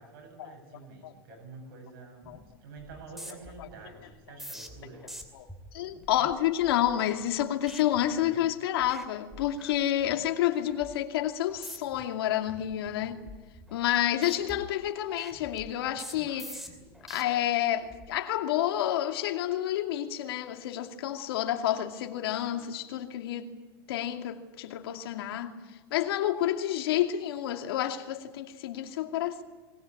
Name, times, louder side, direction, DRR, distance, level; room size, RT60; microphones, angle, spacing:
voice 1, 0.0-2.3 2.6-5.1, right 4 dB, 70° right, 8.0 m, -48 dB
sound 1, 2.2-2.5 2.8-8.5 8.8-9.1 9.3-10.3 10.7-11.0 11.5-12.0 12.5-14.0 14.2-17.2 17.8-18.1, equal, ahead, 2.6 m, -47 dB
voice 2, 5.7-13.3 13.7-16.6 17.1-23.5 23.9-25.6 25.9-29.4, left 12 dB, 75° left, 2.6 m, -29 dB
21.5 x 19.0 x 9.9 m
supercardioid pair, 155°, 13 cm